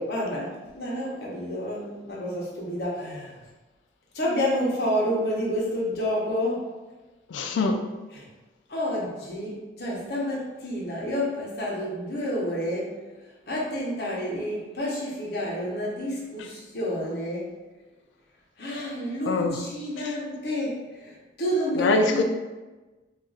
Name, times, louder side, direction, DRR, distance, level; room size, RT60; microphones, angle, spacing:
voice 1, 0.1-3.4 4.1-6.6 8.1-8.2 8.7-12.9 13.5-17.4 18.6-22.2, equal, 55° left, -4 dB, 0.8 m, -29 dB
voice 2, 7.3-7.8 19.3-19.6 21.8-22.2, left 3 dB, 85° left, 5 dB, 0.4 m, -23 dB
2.5 x 2.4 x 3.8 m, 1.2 s
head